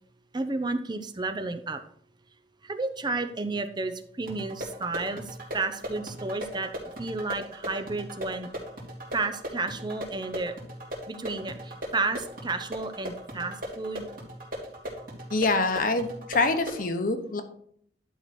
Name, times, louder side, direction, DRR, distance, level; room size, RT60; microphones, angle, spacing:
voice 1, 0.3-1.8 2.6-6.7 7.0-8.5 9.1-10.6 11.1-14.1, right 3 dB, 25° right, 9 dB, 0.6 m, -32 dB
sound 1, 4.3-16.9, equal, 55° right, 2.6 m, -39 dB
voice 2, 15.3-17.4, left 3 dB, 50° left, 8 dB, 1.0 m, -25 dB
11.0 x 4.6 x 4.2 m, 0.64 s
head